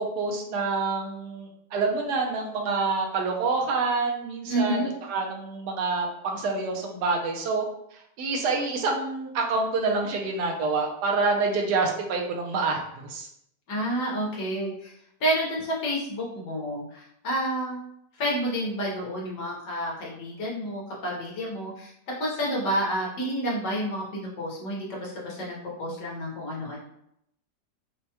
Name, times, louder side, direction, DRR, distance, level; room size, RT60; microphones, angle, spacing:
voice 1, 0.0-4.8 5.1-7.6 7.9-13.3, right 4 dB, 80° right, 1 dB, 1.2 m, -27 dB
voice 2, 4.5-4.9 13.7-14.9 15.2-17.8 18.2-21.9 22.2-26.8, right 1 dB, 85° left, -3 dB, 1.7 m, -29 dB
4.4 x 2.2 x 2.8 m, 0.74 s
omnidirectional pair, 1.8 m